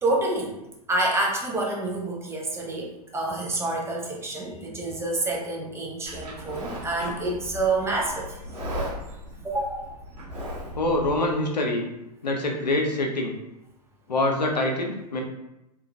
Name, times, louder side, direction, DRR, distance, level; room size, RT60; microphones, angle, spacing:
voice 1, 0.0-0.6 0.9-8.4 9.4-9.9, right 2 dB, 10° right, -1 dB, 0.6 m, -28 dB
Livestock farm animals working animals, 6.1-11.1, equal, 75° right, 1.2 m, -36 dB
voice 2, 10.7-11.8 12.2-13.3 14.1-15.2, left 2 dB, 85° left, 1 dB, 0.6 m, -25 dB
3.0 x 2.3 x 2.6 m, 0.88 s
figure-of-eight pair, 95°, 21 cm